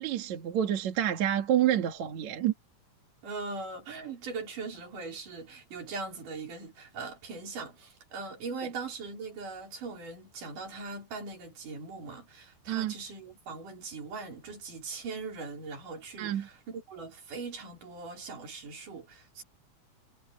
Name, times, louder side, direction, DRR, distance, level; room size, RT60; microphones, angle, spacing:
voice 1, 0.0-2.5 12.7-12.9 16.2-16.5, right 11 dB, 65° right, 3.0 m, -28 dB
voice 2, 3.2-19.4, right 4 dB, 80° right, 5.8 m, -40 dB
omnidirectional pair, 3.6 m